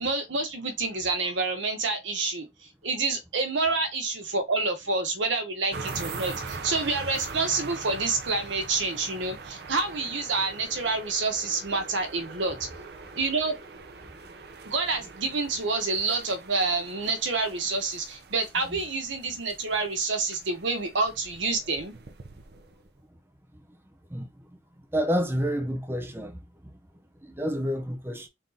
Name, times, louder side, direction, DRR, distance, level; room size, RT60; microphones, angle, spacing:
voice 1, 0.0-2.5 2.8-12.7 13.2-13.6 14.7-21.9, right 3 dB, 80° right, 1.0 m, -28 dB
sound 1, 5.7-23.0, right 4 dB, 55° right, 0.6 m, -42 dB
voice 2, 24.9-26.4 27.2-28.3, equal, 10° right, 0.6 m, -28 dB
3.5 x 2.8 x 3.9 m
head